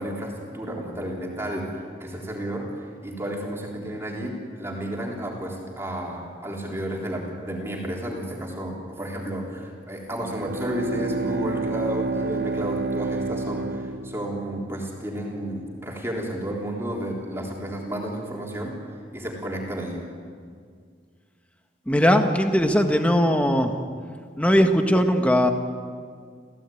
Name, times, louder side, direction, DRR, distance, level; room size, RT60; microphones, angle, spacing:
voice 1, 0.0-18.8 19.1-20.0, right 1 dB, 15° right, -2 dB, 3.6 m, -32 dB
Bowed string instrument, 10.2-14.8, right 3 dB, 60° right, 0.9 m, -29 dB
voice 2, 21.9-23.7 24.4-25.5, equal, 5° left, 5 dB, 1.5 m, -19 dB
29.5 x 16.0 x 9.2 m, 2.1 s
head